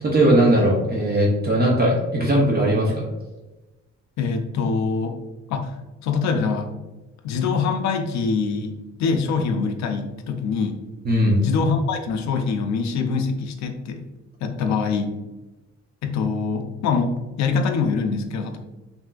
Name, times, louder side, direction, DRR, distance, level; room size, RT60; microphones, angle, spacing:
voice 1, 0.0-2.9 11.0-11.4, right 1 dB, 30° right, -3 dB, 0.7 m, -18 dB
voice 2, 4.2-5.2 5.5-5.8 6.0-6.7 7.2-10.8 11.4-14.1 14.4-15.1 16.0-18.6, left 5 dB, 65° left, 6 dB, 0.5 m, -24 dB
3.4 x 2.6 x 2.3 m, 1.1 s
cardioid pair, 90°, 30 cm